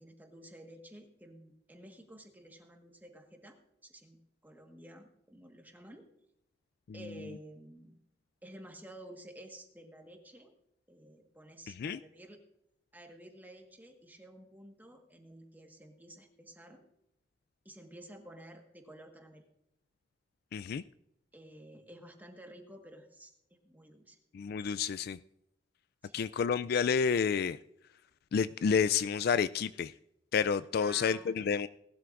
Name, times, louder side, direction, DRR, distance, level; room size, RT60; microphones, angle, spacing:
voice 1, 0.0-6.1 6.9-8.0 8.4-10.5 10.9-12.4 12.9-16.8 17.6-19.4 21.3-24.2 26.0-26.2 30.8-31.4, right 1 dB, 10° right, 3 dB, 1.5 m, -52 dB
voice 2, 11.7-12.0 20.5-20.8 24.3-25.2 26.1-27.6 28.3-29.9 30.3-31.7, left 6 dB, 55° left, 15 dB, 0.3 m, -30 dB
19.0 x 12.5 x 2.5 m, 0.81 s
head